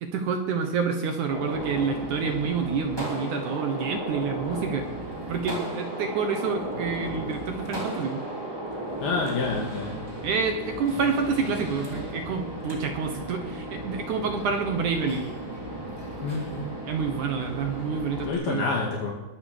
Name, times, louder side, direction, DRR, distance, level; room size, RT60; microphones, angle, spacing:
voice 1, 0.0-4.9 5.3-8.2 10.2-15.3 16.9-18.7, right 5 dB, 65° right, 5 dB, 2.1 m, -28 dB
Gunshot gunfire, 1.3-18.3, right 1 dB, 5° right, 2.8 m, -35 dB
voice 2, 9.0-9.9 16.2-16.5 18.2-19.1, left 4 dB, 65° left, -1 dB, 3.6 m, -27 dB
21.0 x 8.5 x 6.7 m, 1.1 s
omnidirectional pair, 4.7 m